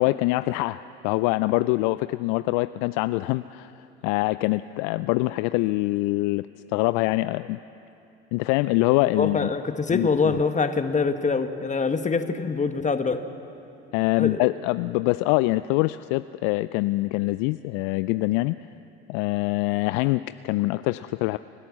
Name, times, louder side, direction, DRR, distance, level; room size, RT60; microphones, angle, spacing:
voice 1, 0.0-6.4 6.7-7.6 8.3-9.5 9.9-10.4 13.9-18.6 19.1-21.4, left 20 dB, 60° left, 14 dB, 0.5 m, -24 dB
voice 2, 9.2-13.2 14.2-14.4, left 4 dB, 20° left, 8 dB, 1.5 m, -24 dB
29.5 x 12.0 x 7.4 m, 2.7 s
hypercardioid pair, 70°, 33 cm